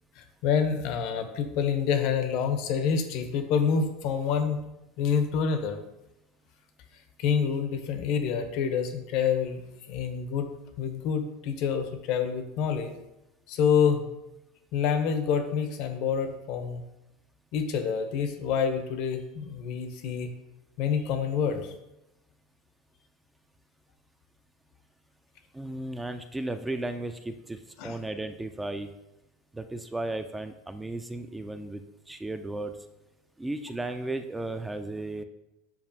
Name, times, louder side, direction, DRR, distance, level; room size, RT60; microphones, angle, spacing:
voice 1, 0.2-4.6 5.0-5.8 7.2-9.6 9.9-12.9 13.5-14.1 14.7-16.8 17.5-20.3 20.8-21.7 27.8-28.0, left 7 dB, 60° left, 7 dB, 0.6 m, -27 dB
voice 2, 25.5-28.9 29.5-32.8 33.4-35.2, right 2 dB, 10° right, 8 dB, 0.3 m, -35 dB
6.9 x 2.4 x 2.7 m, 0.93 s
hypercardioid pair, 100°, 0 cm